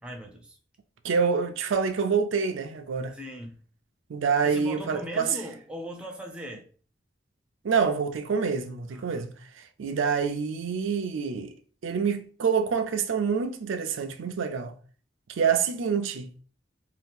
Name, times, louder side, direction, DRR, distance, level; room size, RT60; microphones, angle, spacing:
voice 1, 0.0-0.6 3.1-3.6 4.4-6.7 8.9-9.2, equal, 5° right, 0.4 m, -39 dB
voice 2, 1.0-3.2 4.1-5.3 7.6-11.5 11.8-14.8 15.3-16.3, right 6 dB, 80° right, 0.4 m, -27 dB
2.7 x 2.3 x 3.5 m
head